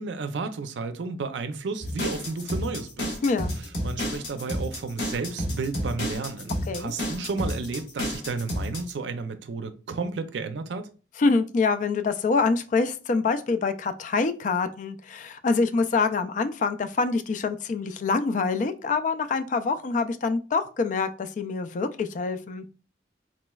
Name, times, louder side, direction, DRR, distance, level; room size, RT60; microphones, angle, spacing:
voice 1, 0.0-3.2 3.8-10.9, right 4 dB, 90° right, 0.5 m, -32 dB
sound 1, 1.8-8.9, equal, 85° left, 1.3 m, -30 dB
voice 2, 3.2-3.5 6.7-6.9 11.2-22.6, left 4 dB, 45° left, 0.3 m, -25 dB
4.0 x 3.0 x 2.3 m
head